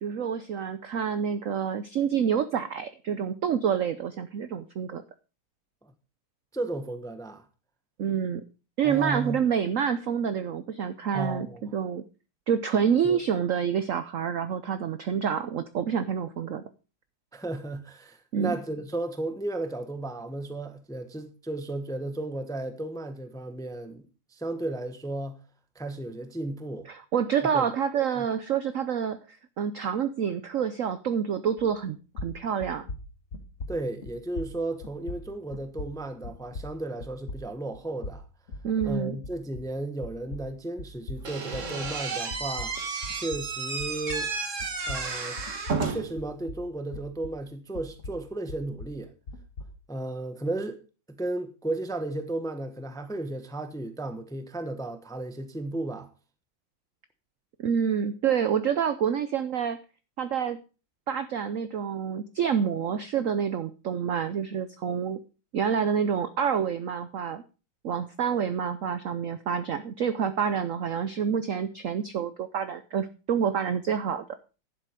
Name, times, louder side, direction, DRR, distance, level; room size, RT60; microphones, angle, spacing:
voice 1, 0.0-5.0 8.0-8.4 8.8-12.0 12.5-16.6 18.3-18.5 26.9-29.2 29.6-32.9 38.6-39.2 57.6-59.8 60.2-60.6 61.1-65.2 65.5-67.4 67.8-74.2, right 7 dB, 70° right, 0.7 m, -28 dB
voice 2, 6.5-7.4 8.8-9.4 11.1-11.7 13.0-13.2 17.3-25.4 25.7-26.9 27.5-27.7 28.1-28.2 33.7-38.2 38.8-42.8 43.1-44.3 44.9-45.4 45.8-49.1 49.9-50.8 51.2-56.1, right 2 dB, 5° left, 0.6 m, -34 dB
sound 1, 31.6-31.9 32.1-39.8 40.0-44.3 44.6-47.5 47.7-49.8, left 2 dB, 40° left, 1.7 m, -41 dB
Slam / Squeak, 41.2-46.2, right 4 dB, 40° right, 1.6 m, -32 dB
11.0 x 7.6 x 5.1 m
omnidirectional pair, 2.2 m